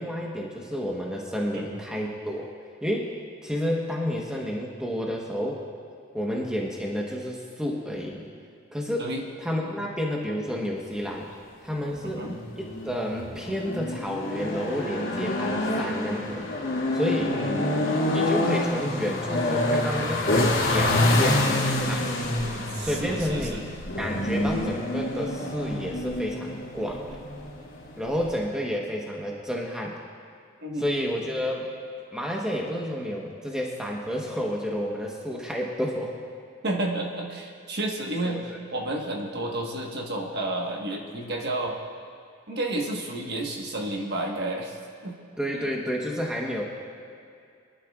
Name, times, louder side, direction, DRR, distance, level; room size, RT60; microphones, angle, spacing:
voice 1, 0.0-2.5 2.8-3.1 3.4-5.6 6.1-8.3 8.7-9.1 9.4-11.3 11.6-12.3 12.6-16.4 16.9-17.4 18.1-22.1 22.8-23.6 24.0-27.2 28.0-29.9 30.8-31.7 32.1-36.1 38.5-38.6 45.4-46.6, equal, 5° right, -2 dB, 1.1 m, -30 dB
sound 1, 11.8-28.5, left 1 dB, 55° left, 2.6 m, -27 dB
voice 2, 12.0-12.4 17.3-17.8 22.7-23.7 30.6-30.9 36.6-41.8 42.5-44.8 45.0-45.2, right 1 dB, 45° right, 0 dB, 1.3 m, -31 dB
23.0 x 11.5 x 2.4 m, 2.4 s
head